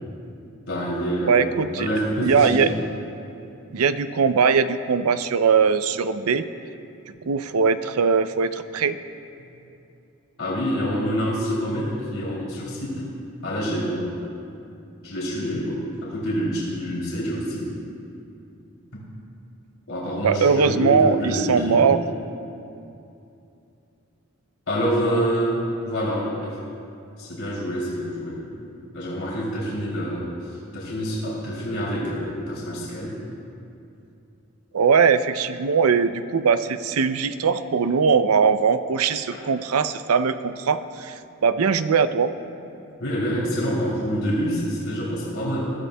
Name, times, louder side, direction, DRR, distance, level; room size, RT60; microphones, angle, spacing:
voice 1, 0.7-1.4 1.7-2.6 10.4-13.0 13.4-14.2 15.0-17.7 19.9-21.9 24.7-26.6 27.2-28.5 28.9-33.2 39.3-39.4 43.0-45.7, equal, 70° left, -7 dB, 3.2 m, -26 dB
voice 2, 1.3-1.9 2.2-2.7 3.7-6.5 7.3-9.0 20.2-22.0 34.7-42.3, right 5 dB, 90° right, 12 dB, 0.5 m, -20 dB
21.0 x 14.0 x 2.3 m, 2.6 s
head